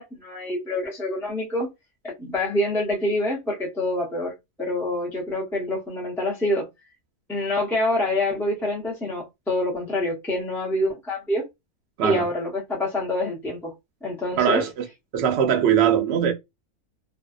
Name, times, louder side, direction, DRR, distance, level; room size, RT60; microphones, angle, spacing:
voice 1, 0.0-1.7 2.0-6.7 7.3-11.5 12.0-13.7 14.0-14.6, left 1 dB, 5° left, 0.5 m, -26 dB
voice 2, 14.4-14.8 15.1-16.3, right 9 dB, 75° right, 0.6 m, -21 dB
2.5 x 2.2 x 2.3 m
omnidirectional pair, 1.6 m